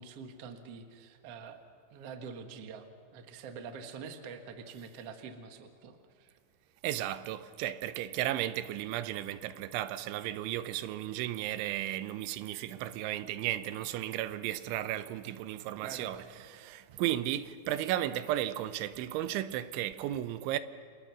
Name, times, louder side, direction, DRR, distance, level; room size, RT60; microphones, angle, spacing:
voice 1, 0.0-1.6 1.9-2.9 3.1-6.4 15.8-16.1, right 6 dB, 55° right, 1.7 m, -45 dB
voice 2, 6.8-20.6, right 13 dB, 90° right, 3.3 m, -34 dB
29.5 x 28.0 x 6.1 m
omnidirectional pair, 5.3 m